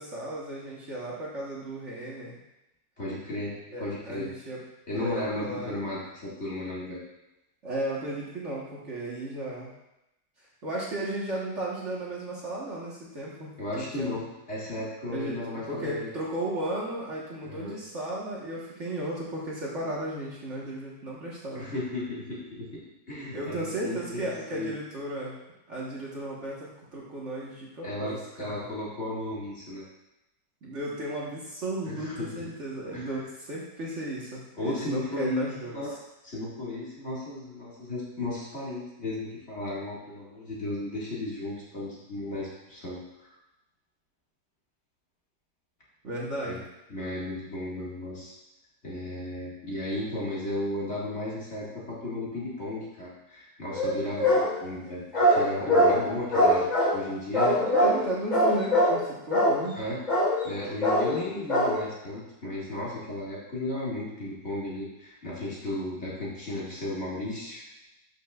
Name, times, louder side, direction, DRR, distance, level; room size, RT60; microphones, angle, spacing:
voice 1, 0.0-2.4 3.7-5.8 7.6-9.7 10.4-14.2 15.1-21.7 23.3-25.4 25.7-28.7 30.6-35.8 46.0-46.6 57.6-59.8, right 1 dB, 45° right, -5 dB, 1.5 m, -35 dB
voice 2, 3.0-4.3 4.9-7.0 13.6-16.1 17.4-17.8 21.5-22.8 23.1-24.7 27.8-29.8 31.8-32.3 32.9-33.1 34.6-35.9 36.2-43.3 46.4-46.6 46.9-48.3 48.8-57.6 59.8-60.0 60.4-67.6, left 1 dB, 40° left, -7 dB, 2.2 m, -34 dB
sound 1, 53.7-54.5 55.1-56.0 56.3-57.0 57.3-58.0 58.3-59.0 59.3-59.6 60.1-60.4 60.8-61.2 61.5-61.8, equal, 25° left, 2.8 m, -22 dB
11.5 x 6.2 x 2.4 m, 0.91 s
omnidirectional pair, 1.9 m